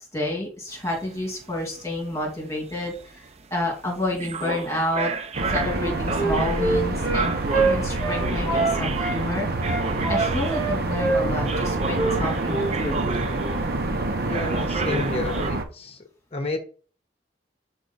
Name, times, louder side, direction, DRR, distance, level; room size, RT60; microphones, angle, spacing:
voice 1, 0.1-3.3 3.5-5.1 5.5-13.0, left 1 dB, 15° left, 2.5 m, -29 dB
sound 1, 0.7-10.9 11.5-13.9 14.3-15.5, right 4 dB, 35° right, 0.6 m, -32 dB
sound 2, 5.3-15.6, right 2 dB, 55° right, 1.0 m, -27 dB
Wind instrument woodwind instrument, 5.7-9.2 9.6-11.7 11.9-12.1 12.4-12.7 13.0-13.2, right 3 dB, 20° right, 3.7 m, -25 dB
voice 2, 14.2-16.0 16.3-16.6, left 2 dB, 35° left, 1.0 m, -30 dB
6.1 x 4.9 x 4.1 m
head